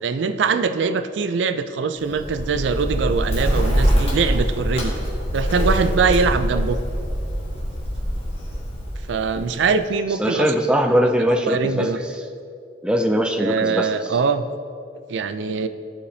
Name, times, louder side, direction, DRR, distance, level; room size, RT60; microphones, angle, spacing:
voice 1, 0.0-4.9 5.3-6.8 9.1-10.6 11.5-12.0 13.4-14.4 15.1-15.7, right 5 dB, 85° right, 10 dB, 0.4 m, -22 dB
Bird, 2.0-9.8, equal, 30° left, 1.4 m, -24 dB
voice 2, 10.2-11.9 12.8-13.9, equal, 5° right, 4 dB, 0.3 m, -20 dB
14.0 x 5.0 x 2.7 m, 2.5 s
head